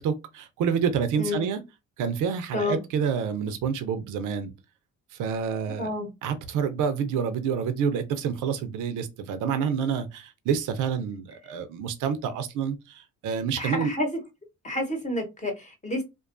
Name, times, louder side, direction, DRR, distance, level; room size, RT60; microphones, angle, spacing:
voice 1, 0.0-1.6 2.0-4.5 5.2-5.9 6.2-13.9, right 7 dB, 85° right, 0.5 m, -28 dB
voice 2, 2.5-2.8 5.8-6.1 13.6-14.2 14.6-16.0, left 1 dB, 25° left, 0.9 m, -29 dB
2.5 x 2.3 x 2.4 m
cardioid pair, 90°, 30 cm